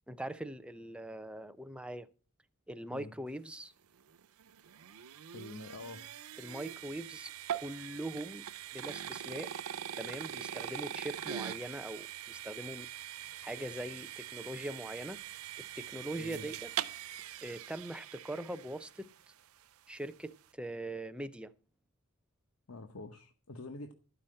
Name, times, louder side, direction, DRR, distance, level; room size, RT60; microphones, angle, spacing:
voice 1, 0.1-2.1 2.7-3.7 6.4-8.4 8.7-9.5 9.9-12.9 13.4-15.2 15.6-16.7 17.4-19.1 19.9-21.5, right 1 dB, 5° right, 0.5 m, -42 dB
sound 1, 4.0-19.2, right 10 dB, 75° right, 0.5 m, -43 dB
voice 2, 5.3-6.1 16.2-16.5 22.7-23.9, left 2 dB, 70° left, 1.0 m, -46 dB
12.5 x 5.7 x 7.6 m
head